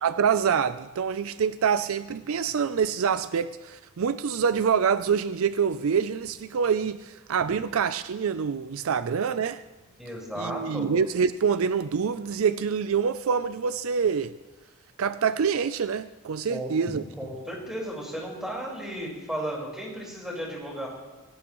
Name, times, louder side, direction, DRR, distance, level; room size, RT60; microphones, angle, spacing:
voice 1, 0.0-9.6 10.4-14.3 15.0-17.0, right 6 dB, 70° right, 0.4 m, -26 dB
voice 2, 10.0-10.9 16.5-16.7 17.2-20.9, equal, ahead, 4.7 m, -34 dB
25.0 x 18.0 x 3.1 m
head